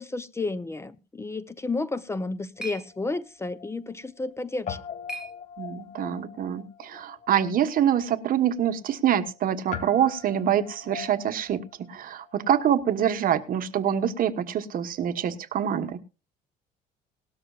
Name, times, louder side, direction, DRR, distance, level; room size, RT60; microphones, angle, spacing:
voice 1, 0.0-4.8, left 3 dB, 15° left, 0.7 m, -32 dB
sound 1, 1.8-6.1, right 1 dB, 5° right, 3.1 m, -45 dB
Guitar, 2.6-4.3 4.6-13.3, left 7 dB, 50° left, 1.9 m, -43 dB
voice 2, 5.6-16.0, right 9 dB, 55° right, 1.3 m, -25 dB
18.5 x 13.0 x 2.4 m
cardioid pair, 110°, 17 cm